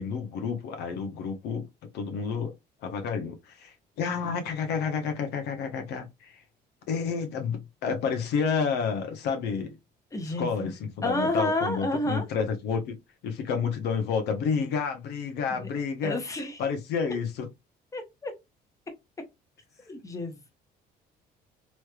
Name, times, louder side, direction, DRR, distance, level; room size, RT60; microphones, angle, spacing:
voice 1, 0.0-1.7 1.9-2.5 2.8-6.4 6.9-9.8 10.2-13.0 13.2-16.2 16.6-17.5, left 6 dB, 80° left, 0.8 m, -30 dB
voice 2, 10.1-10.7 11.0-12.2 15.6-15.7 16.0-16.6 17.9-18.3 19.9-20.5, left 1 dB, 20° left, 1.0 m, -30 dB
3.2 x 3.1 x 2.3 m
cardioid pair, 110°, 17 cm